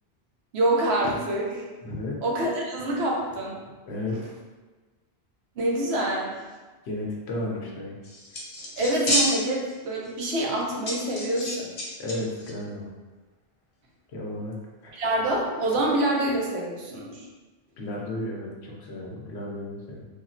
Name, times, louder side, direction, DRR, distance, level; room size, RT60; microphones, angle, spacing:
voice 1, 0.5-1.6 2.2-3.6 5.6-6.4 8.8-11.7 14.9-17.3, right 1 dB, 80° right, -2 dB, 0.9 m, -26 dB
voice 2, 1.8-2.2 3.9-4.2 6.8-8.0 12.0-12.9 14.1-14.6 14.8-14.9 17.8-20.0, left 1 dB, 90° left, -2 dB, 0.9 m, -33 dB
sound 1, 8.0-9.7 10.0-10.1 10.9-12.1 12.4-12.5, left 1 dB, 40° left, 0.6 m, -28 dB
3.5 x 2.0 x 2.5 m, 1.3 s
omnidirectional pair, 1.1 m